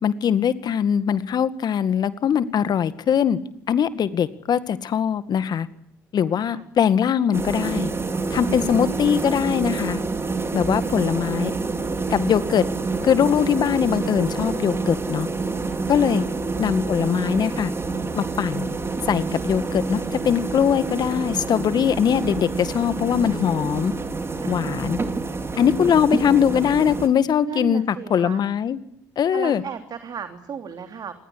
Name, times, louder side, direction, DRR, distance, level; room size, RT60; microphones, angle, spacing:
voice 1, 0.0-3.4 3.7-5.7 6.1-7.9 8.3-10.0 10.5-11.5 12.1-12.7 13.0-15.3 15.9-16.3 16.6-17.7 18.2-18.7 19.1-23.9 24.5-25.0 25.6-28.8 29.2-29.6, left 8 dB, 60° left, 13 dB, 2.0 m, -21 dB
voice 2, 6.3-6.7 8.5-9.2 10.7-11.4 15.9-16.3 24.4-25.0 27.5-28.4 29.3-31.1, right 7 dB, 55° right, 7 dB, 3.2 m, -36 dB
sound 1, 7.3-27.1, right 3 dB, 30° right, 5.2 m, -27 dB
27.5 x 21.0 x 10.0 m, 0.69 s
hypercardioid pair, 45°, 8 cm